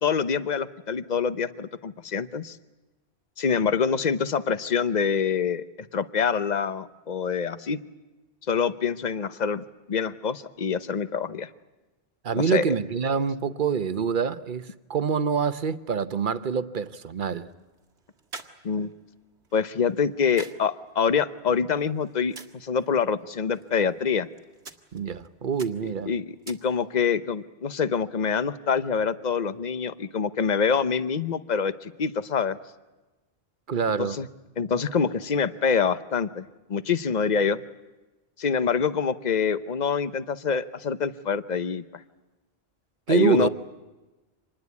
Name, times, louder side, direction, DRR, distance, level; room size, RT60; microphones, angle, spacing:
voice 1, 0.0-2.6 3.4-7.8 8.5-11.5 12.3-12.7 18.6-18.9 19.5-24.3 26.1-32.6 34.0-34.3 34.6-37.6 38.4-41.8 43.1-43.5, left 6 dB, 45° left, 1.0 m, -26 dB
voice 2, 12.2-17.5 24.9-26.1 33.7-34.2 43.1-43.5, right 6 dB, 50° right, 1.1 m, -26 dB
sound 1, 17.1-27.1, right 3 dB, 85° right, 2.0 m, -49 dB
26.0 x 20.5 x 8.4 m
omnidirectional pair, 1.1 m